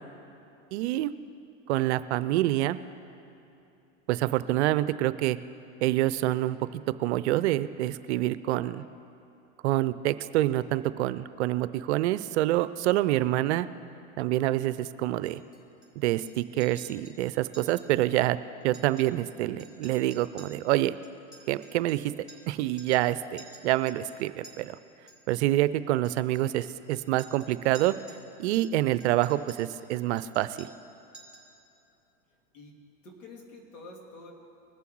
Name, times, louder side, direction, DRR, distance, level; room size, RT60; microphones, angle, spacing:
voice 1, 0.7-1.1 1.7-2.8 4.1-5.4 5.8-8.8 9.6-13.7 14.2-15.4 16.0-18.4 18.6-21.0 21.5-22.1 22.5-24.8 25.3-27.9 28.4-30.7, right 15 dB, 60° right, 15 dB, 0.6 m, -27 dB
Chink clink, 15.3-15.9 16.2-16.3 16.6-17.2 17.5-17.9 18.1-18.2 18.6-19.3 19.6-22.5 22.8-23.1 23.4-24.5 25.1-25.4 26.0-28.2 28.5-29.8 30.2-30.9 31.1-31.5, right 2 dB, ahead, 2.7 m, -52 dB
voice 2, 33.0-34.3, left 2 dB, 85° left, 0 dB, 2.8 m, -47 dB
20.5 x 7.0 x 4.6 m, 2.8 s
hypercardioid pair, 115°, 38 cm